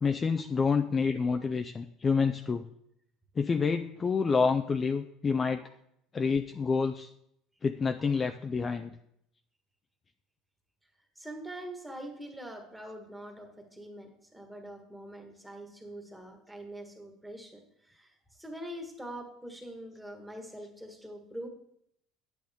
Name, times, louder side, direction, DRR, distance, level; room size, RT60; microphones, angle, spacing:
voice 1, 0.0-2.6 3.4-5.6 6.1-7.1 7.6-8.9, left 5 dB, 20° left, 7 dB, 0.4 m, -28 dB
voice 2, 11.1-21.5, right 1 dB, 5° right, 3 dB, 1.5 m, -44 dB
9.2 x 8.8 x 3.6 m, 0.75 s
cardioid pair, 150°, 0 cm